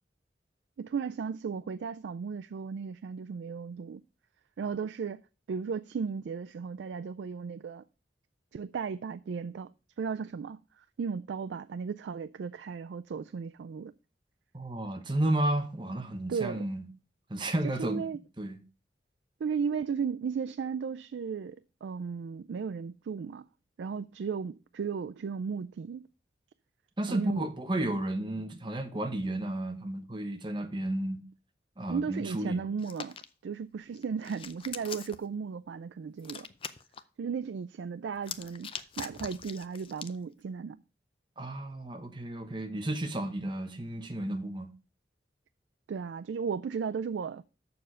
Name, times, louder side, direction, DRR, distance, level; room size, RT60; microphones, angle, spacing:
voice 1, 0.8-4.0 4.6-5.2 5.5-7.8 8.5-9.7 10.0-13.9 16.3-16.6 17.6-18.2 19.4-23.5 23.8-26.1 27.1-27.5 31.9-33.1 33.4-36.5 37.2-40.8 45.9-47.4, right 6 dB, 85° right, 0.3 m, -35 dB
voice 2, 14.5-16.9 17.3-18.1 18.4-18.6 27.0-31.2 31.8-32.7 41.4-44.7, right 1 dB, 25° right, 1.0 m, -32 dB
Hands, 32.8-33.2 34.0-35.2 36.2-37.0 38.2-40.2, left 7 dB, 30° left, 0.4 m, -42 dB
6.9 x 6.3 x 5.4 m
head